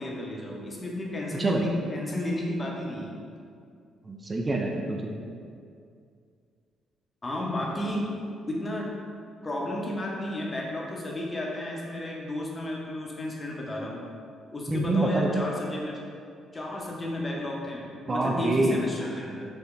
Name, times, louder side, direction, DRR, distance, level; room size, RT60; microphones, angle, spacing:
voice 1, 0.0-3.1 7.2-8.1 8.5-8.9 9.4-14.0 14.5-16.0 16.5-19.5, left 1 dB, 30° left, -2 dB, 0.6 m, -32 dB
voice 2, 4.0-5.1 14.7-15.3 18.1-18.8, right 2 dB, 30° right, 0 dB, 0.3 m, -26 dB
3.6 x 2.1 x 2.4 m, 2.3 s
hypercardioid pair, 45°, 0 cm